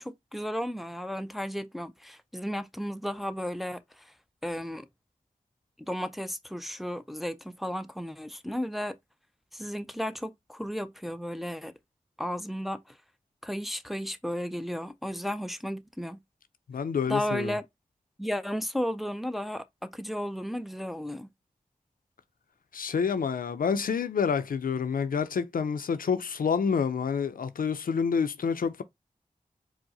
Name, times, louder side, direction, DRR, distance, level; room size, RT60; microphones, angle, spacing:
voice 1, 0.0-4.1 4.4-4.9 5.9-9.0 9.5-11.7 12.2-13.0 13.4-16.2 17.1-17.6 18.2-21.3, equal, ahead, 0.4 m, -34 dB
voice 2, 16.7-17.5 22.7-28.8, left 6 dB, 85° left, 0.4 m, -28 dB
4.6 x 2.0 x 2.7 m
cardioid pair, 40°, 14 cm